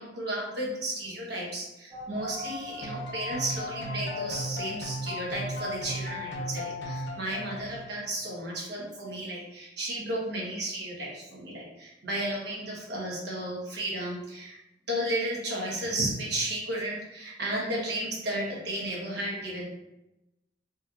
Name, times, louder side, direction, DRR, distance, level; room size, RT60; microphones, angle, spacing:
voice 1, 0.0-14.6 14.9-19.6, right 1 dB, 60° right, -4 dB, 1.1 m, -33 dB
sound 1, 1.9-7.8, left 3 dB, 45° right, 1.3 m, -43 dB
sound 2, 2.8-8.0, equal, 70° left, 0.7 m, -36 dB
4.2 x 3.0 x 2.4 m, 0.93 s
head